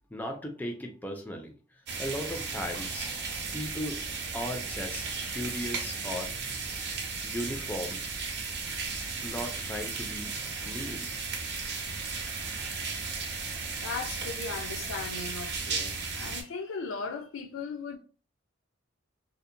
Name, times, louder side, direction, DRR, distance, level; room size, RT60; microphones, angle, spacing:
voice 1, 0.1-1.5 2.0-3.1 3.5-4.0 4.3-6.3 7.2-8.1 9.2-10.3 10.6-11.2, left 1 dB, 10° left, 0.4 m, -36 dB
sound 1, 1.9-16.4, right 4 dB, 55° right, 0.6 m, -35 dB
voice 2, 13.8-18.0, left 4 dB, 90° left, 0.5 m, -37 dB
2.7 x 2.0 x 2.5 m
head